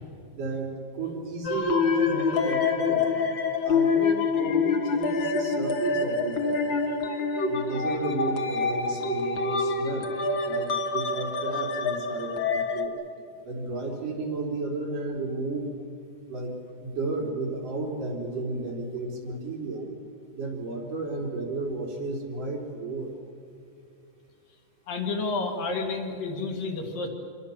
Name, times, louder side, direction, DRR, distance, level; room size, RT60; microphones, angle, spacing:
voice 1, 0.3-3.1 3.6-6.8 7.5-10.1 10.5-12.4 12.7-12.9 13.5-15.7 16.3-16.5 16.8-19.9 20.4-23.2, right 3 dB, 70° right, -1 dB, 5.3 m, -33 dB
sound 1, 1.4-12.8, left 4 dB, 45° left, 1.6 m, -26 dB
voice 2, 24.9-27.1, left 3 dB, 75° left, 2 dB, 4.1 m, -30 dB
27.5 x 22.5 x 7.3 m, 2.5 s
omnidirectional pair, 4.0 m